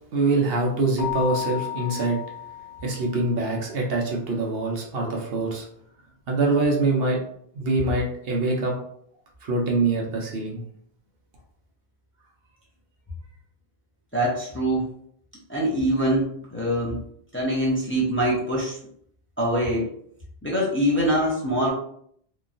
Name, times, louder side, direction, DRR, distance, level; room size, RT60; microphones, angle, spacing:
voice 1, 0.1-2.2 2.8-5.7 6.3-7.2 7.5-8.7 9.4-10.6, right 2 dB, 70° right, 0 dB, 0.8 m, -24 dB
Keyboard (musical), 1.0-3.4, left 11 dB, 85° left, 0.9 m, -33 dB
voice 2, 14.1-14.9 15.5-17.0 17.3-18.8 19.4-19.9 20.4-21.7, equal, 15° left, -6 dB, 0.7 m, -24 dB
3.0 x 2.2 x 2.5 m, 0.66 s
omnidirectional pair, 1.1 m